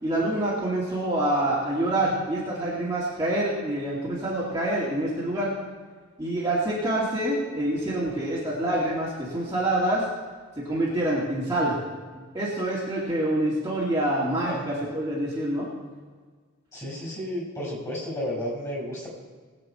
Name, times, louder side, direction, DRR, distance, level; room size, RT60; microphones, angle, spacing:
voice 1, 0.0-5.5 6.2-10.1 10.6-11.7 12.1-15.7, right 1 dB, 15° right, -8 dB, 2.5 m, -26 dB
voice 2, 16.7-19.1, left 1 dB, 15° left, -4 dB, 5.0 m, -32 dB
21.0 x 8.5 x 4.4 m, 1.5 s
head